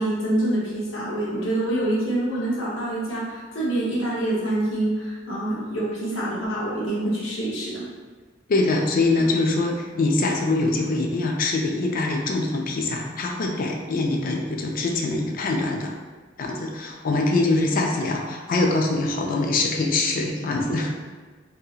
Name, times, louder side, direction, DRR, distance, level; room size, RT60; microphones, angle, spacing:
voice 1, 0.0-7.8, right 1 dB, 90° left, -6 dB, 0.8 m, -26 dB
voice 2, 8.5-15.9 16.4-20.9, left 2 dB, 45° left, 1 dB, 0.4 m, -23 dB
2.8 x 2.6 x 2.3 m, 1.4 s
head